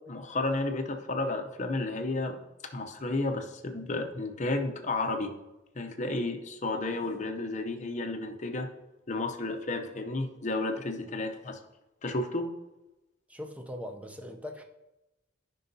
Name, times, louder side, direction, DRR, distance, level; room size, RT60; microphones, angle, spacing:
voice 1, 0.1-2.4 2.7-5.3 5.7-8.7 9.1-11.6 12.0-12.5, left 2 dB, 40° left, 5 dB, 0.7 m, -32 dB
voice 2, 13.3-14.6, left 1 dB, 5° right, 4 dB, 0.6 m, -41 dB
11.5 x 5.4 x 2.7 m, 0.99 s
head